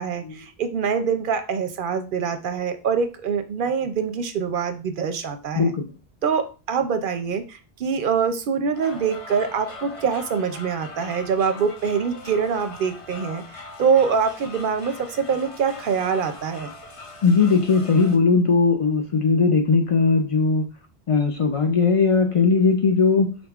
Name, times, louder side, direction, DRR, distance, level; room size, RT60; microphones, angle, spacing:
voice 1, 0.0-5.7 6.2-16.7, right 6 dB, 60° right, 8 dB, 0.6 m, -24 dB
voice 2, 5.6-5.9 17.2-20.7 21.1-23.4, left 4 dB, 60° left, 4 dB, 0.3 m, -19 dB
sound 1, 8.7-18.2, left 2 dB, 35° left, 0.7 m, -41 dB
5.2 x 3.8 x 2.3 m, 0.34 s
omnidirectional pair, 1.1 m